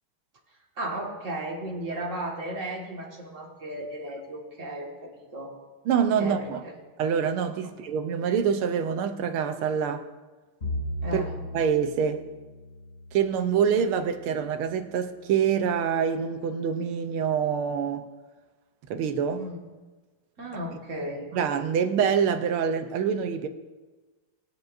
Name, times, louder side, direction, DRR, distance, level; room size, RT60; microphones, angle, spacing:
voice 1, 0.8-5.5 6.2-6.7 7.6-7.7 11.0-11.3 19.4-19.6 20.4-21.3, right 1 dB, 35° right, 2.0 m, -35 dB
voice 2, 5.9-6.6 7.0-10.1 11.1-11.2 11.5-12.2 13.1-18.1 18.9-19.4 21.3-23.5, right 7 dB, 85° right, 1.7 m, -25 dB
Bowed string instrument, 10.6-15.0, left 1 dB, 30° left, 3.0 m, -37 dB
21.0 x 8.0 x 2.6 m
omnidirectional pair, 2.4 m